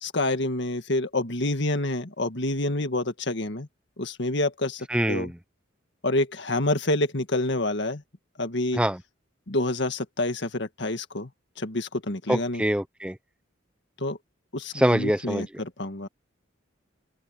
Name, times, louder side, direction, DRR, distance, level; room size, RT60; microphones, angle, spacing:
voice 1, 0.0-3.7 4.0-5.3 6.0-8.0 8.4-8.8 9.5-11.3 11.6-12.6 14.0-14.2 14.5-16.1, left 2 dB, 60° left, 1.9 m, -27 dB
voice 2, 4.9-5.4 8.7-9.0 12.3-13.2 14.7-15.5, right 1 dB, 5° right, 0.8 m, -24 dB
open air
head